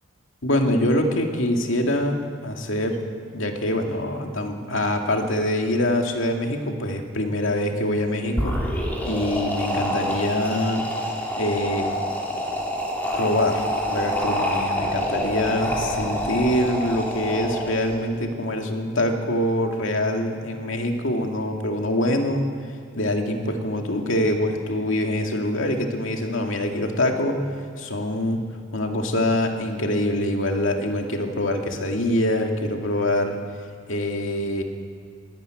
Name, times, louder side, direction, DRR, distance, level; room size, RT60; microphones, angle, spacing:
voice 1, 0.4-3.0 3.3-8.6 9.0-10.8 11.4-12.0 13.2-22.5 22.9-27.4 27.8-28.4 28.7-33.4 33.9-34.6, left 1 dB, 75° left, 3 dB, 2.3 m, -24 dB
sound 1, 8.3-18.0, equal, 10° left, 3.5 m, -27 dB
22.5 x 13.0 x 9.0 m, 2.3 s
head